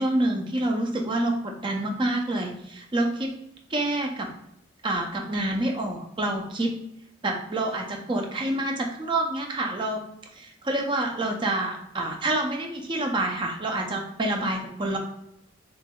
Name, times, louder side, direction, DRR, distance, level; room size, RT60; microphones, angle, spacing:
voice 1, 0.0-3.3 3.7-4.3 4.8-6.8 7.2-10.0 10.3-15.0, right 1 dB, 25° right, 2 dB, 0.5 m, -27 dB
4.0 x 3.3 x 2.2 m, 0.82 s
head